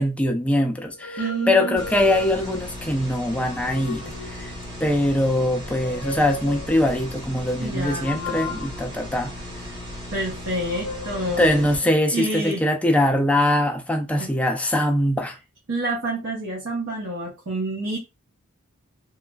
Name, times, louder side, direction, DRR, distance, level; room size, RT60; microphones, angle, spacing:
voice 1, 0.0-4.0 4.3-4.5 4.8-9.3 11.4-15.4, left 1 dB, 5° left, 0.4 m, -22 dB
sound 1, 0.9-2.7 3.3-4.6 5.6-7.0 8.0-9.9 10.5-11.4, left 4 dB, 80° left, 0.6 m, -36 dB
voice 2, 1.2-1.8 7.6-8.6 10.1-11.7 12.1-12.7 14.2-14.3 15.7-18.0, right 2 dB, 65° right, 0.9 m, -28 dB
sound 2, 1.8-11.8, left 1 dB, 20° right, 1.1 m, -37 dB
3.1 x 2.3 x 2.3 m
head